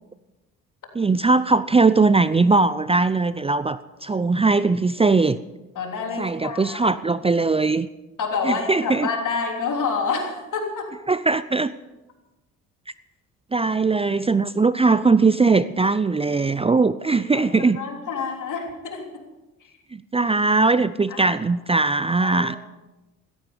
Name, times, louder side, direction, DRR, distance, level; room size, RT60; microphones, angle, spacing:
voice 1, 0.9-5.4 6.2-7.9 8.4-9.1 11.1-11.7 13.5-17.8 19.9-22.6, right 3 dB, 15° right, 15 dB, 0.6 m, -20 dB
voice 2, 5.7-7.0 8.2-10.9 17.1-19.2 21.1-21.3 22.2-22.6, left 5 dB, 60° left, 2 dB, 3.5 m, -28 dB
16.0 x 13.5 x 5.2 m, 1.1 s
hypercardioid pair, 55°, 35 cm